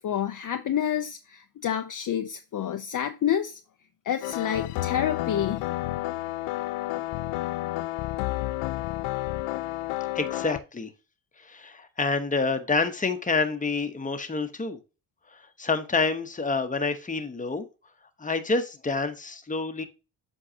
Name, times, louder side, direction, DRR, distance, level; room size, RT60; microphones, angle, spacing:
voice 1, 0.0-3.6 4.1-5.7, left 9 dB, 40° left, 0.6 m, -28 dB
sound 1, 4.2-10.6, left 16 dB, 85° left, 0.5 m, -30 dB
voice 2, 10.1-10.9 11.4-14.8 15.3-17.7 18.2-19.8, left 4 dB, 15° left, 1.0 m, -28 dB
7.7 x 4.7 x 2.8 m
cardioid pair, 80°, 49 cm